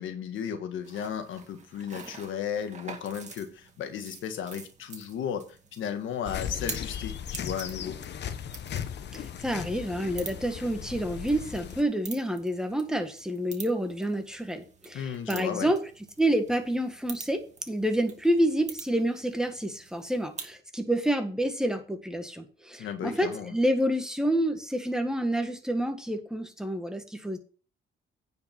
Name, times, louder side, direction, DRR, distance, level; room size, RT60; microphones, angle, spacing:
voice 1, 0.0-8.0 14.9-15.7 22.8-23.5, left 8 dB, 75° left, 1.6 m, -35 dB
sound 1, 0.8-20.6, right 4 dB, 35° right, 2.1 m, -47 dB
sound 2, 6.2-11.8, left 9 dB, 60° left, 1.0 m, -37 dB
voice 2, 9.1-15.8 16.2-27.4, right 1 dB, 5° right, 1.7 m, -28 dB
9.3 x 5.2 x 5.9 m
cardioid pair, 90°, 20 cm